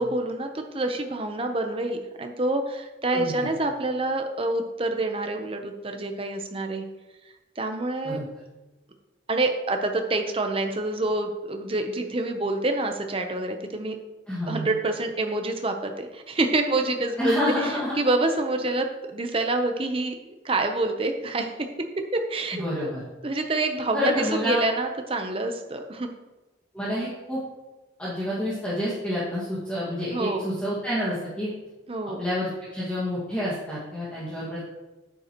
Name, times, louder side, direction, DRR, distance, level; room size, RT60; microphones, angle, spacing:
voice 1, 0.0-6.8 7.6-8.2 9.3-13.9 14.5-21.5 22.1-22.9 23.2-26.1 30.1-30.5 31.9-32.2, right 2 dB, 30° right, 5 dB, 0.8 m, -27 dB
voice 2, 3.1-3.5 8.0-8.2 14.3-14.7 17.2-17.9 22.5-23.0 23.9-24.6 26.7-27.4 28.0-31.5 32.2-34.6, left 1 dB, 5° left, -9 dB, 1.9 m, -28 dB
9.2 x 9.2 x 3.0 m, 1.1 s
head